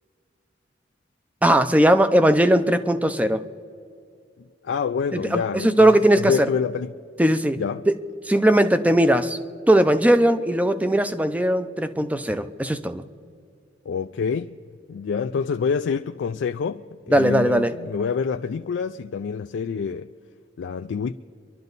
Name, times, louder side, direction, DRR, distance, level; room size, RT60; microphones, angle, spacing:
voice 1, 1.4-3.4 5.3-6.5 7.2-7.6 7.9-8.0 8.3-9.4 9.7-13.0 17.1-17.7, right 1 dB, 10° right, 0.5 m, -19 dB
voice 2, 4.6-5.9 6.2-6.9 7.6-7.9 13.9-14.6 14.9-16.8 17.1-20.1 20.6-21.1, left 6 dB, 85° left, 0.4 m, -27 dB
27.0 x 12.0 x 4.0 m
head